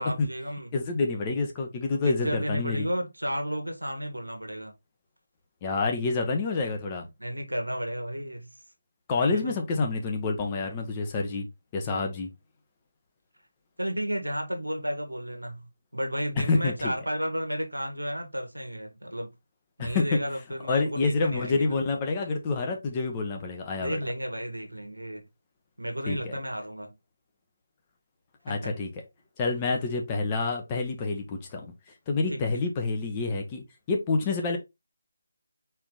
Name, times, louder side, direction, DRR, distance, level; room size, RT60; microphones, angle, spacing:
voice 1, 0.0-0.7 2.0-4.7 7.2-8.5 9.2-9.5 13.8-19.3 19.8-21.6 23.8-25.2 25.8-26.9 28.5-28.7 32.3-32.4, equal, 85° right, 1.4 m, -33 dB
voice 2, 0.7-2.9 5.6-7.1 9.1-11.5 11.7-12.3 16.4-16.9 19.8-20.2 20.7-24.0 26.1-26.4 28.4-28.9 29.4-31.7 32.1-34.6, left 3 dB, 20° left, 0.9 m, -28 dB
4.5 x 2.9 x 3.8 m
figure-of-eight pair, 155°, 0 cm